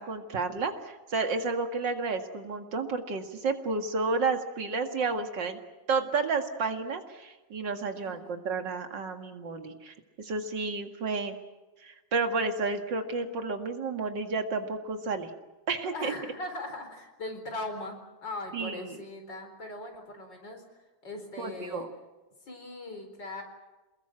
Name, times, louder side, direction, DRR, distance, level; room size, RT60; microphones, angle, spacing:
voice 1, 0.0-5.6 5.9-11.4 11.8-15.3 15.7-16.1 18.5-19.0 21.4-21.9, right 4 dB, 80° right, 5 dB, 2.7 m, -31 dB
voice 2, 7.9-8.3 15.8-20.6 21.0-21.9 22.4-23.4, left 2 dB, 80° left, 5 dB, 5.0 m, -39 dB
28.5 x 20.5 x 7.7 m, 1.2 s
omnidirectional pair, 1.9 m